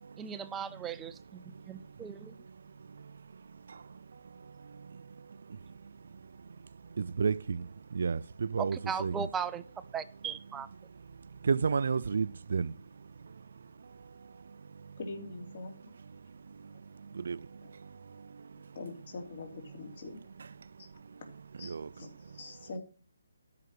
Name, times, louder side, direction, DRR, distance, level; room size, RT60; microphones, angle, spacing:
voice 1, 0.2-2.3 8.6-9.6 9.9-10.7, right 6 dB, 10° right, 0.6 m, -38 dB
voice 2, 7.0-7.6 8.0-8.8 9.0-9.1 11.5-12.7 17.3-17.4 21.6-21.9, right 5 dB, 60° right, 0.5 m, -30 dB
voice 3, 15.0-15.8 17.6-17.7 18.7-20.2 21.6-22.8, left 3 dB, 45° left, 3.2 m, -43 dB
13.0 x 5.9 x 7.8 m
hypercardioid pair, 165°, 0 cm